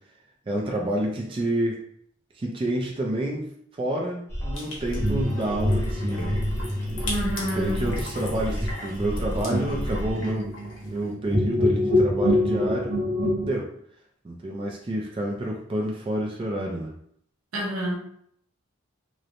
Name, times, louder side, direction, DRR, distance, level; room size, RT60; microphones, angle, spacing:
voice 1, 0.5-1.8 2.4-6.4 7.6-10.5 10.9-13.0 13.4-13.7 14.2-16.9, right 1 dB, 25° right, -1 dB, 0.3 m, -29 dB
sound 1, 4.3-10.3, equal, 15° left, 0.7 m, -32 dB
sound 2, 4.5-11.1, left 2 dB, 70° left, 0.8 m, -40 dB
sound 3, 5.0-13.5, left 1 dB, 5° right, 1.2 m, -26 dB
voice 2, 7.0-7.9 17.5-18.0, equal, 90° right, -2 dB, 0.7 m, -28 dB
3.0 x 2.0 x 2.5 m, 0.67 s
head